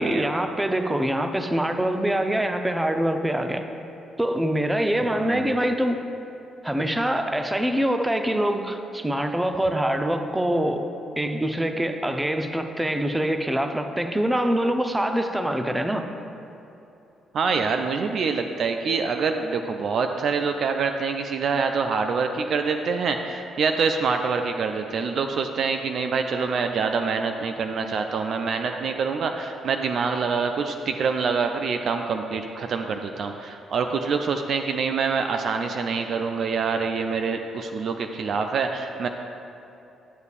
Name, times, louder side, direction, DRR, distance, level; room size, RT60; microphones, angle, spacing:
voice 1, 0.0-3.6 4.2-6.0 6.6-10.9 11.2-16.1, right 1 dB, 10° right, 6 dB, 0.6 m, -24 dB
voice 2, 5.2-5.5 17.3-39.1, right 5 dB, 55° right, 5 dB, 0.4 m, -26 dB
11.0 x 7.9 x 2.5 m, 2.9 s
figure-of-eight pair, 40°, 0 cm